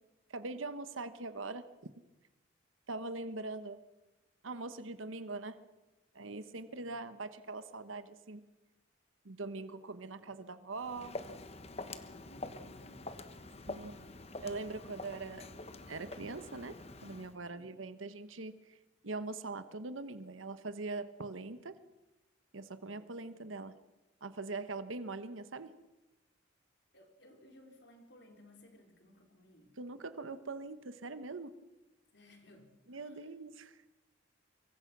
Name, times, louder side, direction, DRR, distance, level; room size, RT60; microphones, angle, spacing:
voice 1, 0.3-1.6 2.9-3.8 4.4-5.6 6.1-8.4 9.2-11.2 13.7-14.0 14.4-15.5 15.9-16.7 17.0-18.8 19.0-21.8 22.5-23.8 24.2-25.7 29.8-31.5 32.9-33.9, right 3 dB, 90° right, 11 dB, 1.2 m, -42 dB
voice 2, 6.5-7.0 9.8-9.9 10.2-10.3 11.9-13.9 17.5-17.8 26.9-29.8 32.1-33.3, left 1 dB, 60° left, 4 dB, 4.1 m, -60 dB
Walk footsteps, 10.7-17.3, left 2 dB, 30° left, 1.3 m, -46 dB
24.5 x 23.5 x 6.1 m, 1.0 s
head